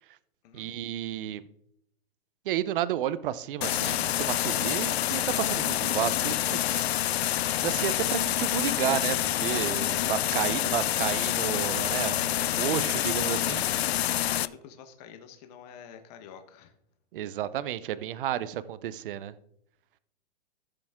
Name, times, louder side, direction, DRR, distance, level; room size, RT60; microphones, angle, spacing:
voice 1, 0.5-1.5 2.5-6.8 7.6-13.6 17.1-19.3, right 11 dB, 60° right, 16 dB, 0.8 m, -32 dB
sound 1, 3.6-14.5, left 12 dB, 85° left, 0.5 m, -27 dB
voice 2, 9.8-10.7 12.0-13.7 14.1-16.7, left 8 dB, 40° left, 7 dB, 1.3 m, -48 dB
15.5 x 6.9 x 3.6 m, 0.76 s
hypercardioid pair, 150°, 31 cm